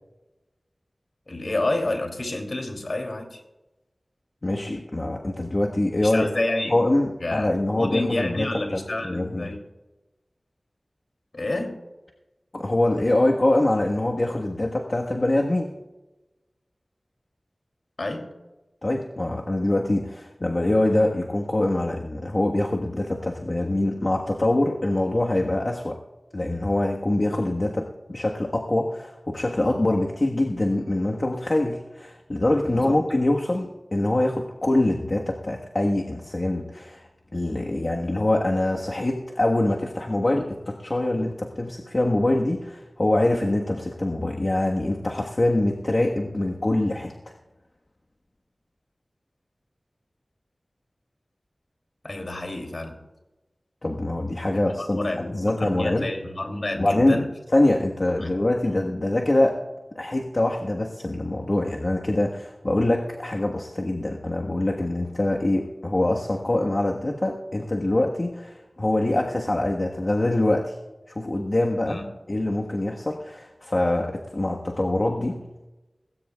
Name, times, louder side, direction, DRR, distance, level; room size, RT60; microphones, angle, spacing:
voice 1, 1.3-3.4 6.0-6.7 7.2-7.5 7.8-9.6 11.3-11.8 18.0-18.3 32.7-33.0 52.0-53.0 54.5-57.3 58.2-58.3 58.7-58.8 71.9-72.0, left 2 dB, 70° left, 3 dB, 2.9 m, -29 dB
voice 2, 4.4-6.3 6.7-8.5 9.0-9.5 12.5-15.7 18.8-26.0 26.3-47.1 53.8-56.1 56.8-57.2 57.5-59.6 59.9-70.7 71.1-72.0 72.3-75.4, left 1 dB, 50° left, -1 dB, 1.4 m, -24 dB
19.5 x 17.0 x 2.4 m, 1.0 s
wide cardioid pair, 40°, 0 cm